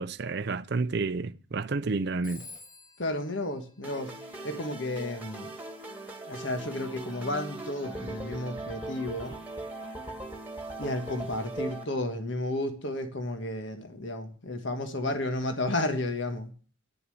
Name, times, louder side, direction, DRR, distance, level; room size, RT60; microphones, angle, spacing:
voice 1, 0.0-2.4, right 3 dB, 50° right, 0.5 m, -30 dB
Telephone, 2.2-4.7, left 3 dB, 20° left, 2.9 m, -51 dB
voice 2, 3.0-4.1 4.4-5.5 6.2-9.3 10.8-16.5, left 1 dB, 60° left, 1.4 m, -32 dB
sound 1, 3.8-11.8, right 2 dB, 10° right, 2.0 m, -39 dB
10.5 x 6.9 x 7.8 m
head